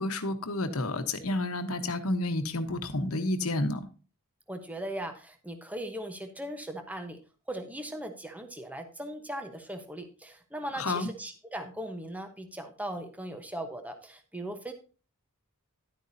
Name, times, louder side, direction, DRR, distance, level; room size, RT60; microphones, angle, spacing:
voice 1, 0.0-3.8 10.7-11.1, left 2 dB, 70° left, 1.1 m, -30 dB
voice 2, 4.5-7.2 7.5-14.7, right 1 dB, 5° right, 1.0 m, -39 dB
11.0 x 9.2 x 2.7 m
head